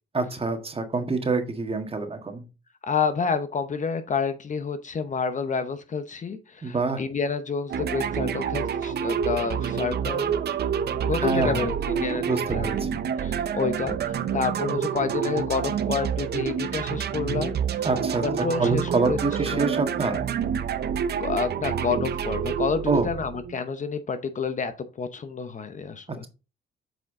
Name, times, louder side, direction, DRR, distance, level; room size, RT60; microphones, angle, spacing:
voice 1, 0.1-2.4 6.6-7.0 11.2-11.7 12.2-13.0 17.8-20.2 22.9-23.1 26.1-26.3, right 3 dB, 30° right, 6 dB, 1.7 m, -26 dB
voice 2, 2.9-10.4 11.0-12.7 13.2-17.6 18.2-19.2 19.5-19.6 21.2-24.7 25.0-26.3, left 5 dB, 40° left, 10 dB, 0.8 m, -29 dB
sound 1, 7.7-23.6, right 7 dB, 55° right, 0.7 m, -28 dB
8.0 x 4.7 x 3.7 m, 0.30 s
cardioid pair, 90°, 20 cm